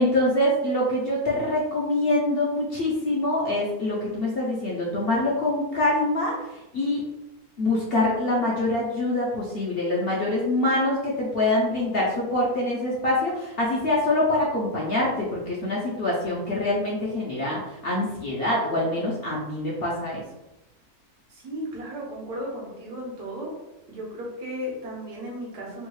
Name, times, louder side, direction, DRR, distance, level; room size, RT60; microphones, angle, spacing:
voice 1, 0.0-6.3 6.7-7.1 7.6-20.2, left 1 dB, 55° left, -5 dB, 0.7 m, -25 dB
voice 2, 21.3-23.5 23.9-25.9, equal, 90° right, -3 dB, 1.5 m, -35 dB
3.5 x 2.3 x 3.0 m, 0.96 s
omnidirectional pair, 1.6 m